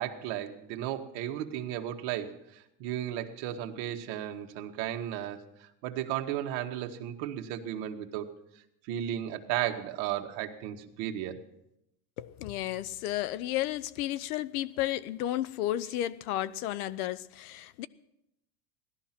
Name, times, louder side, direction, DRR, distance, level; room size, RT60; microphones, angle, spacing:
voice 1, 0.0-5.4 5.8-8.3 8.8-11.4, right 11 dB, 50° right, 1.6 m, -34 dB
voice 2, 12.2-17.9, left 13 dB, 60° left, 0.8 m, -33 dB
17.5 x 12.5 x 5.9 m
supercardioid pair, 150°, 50 cm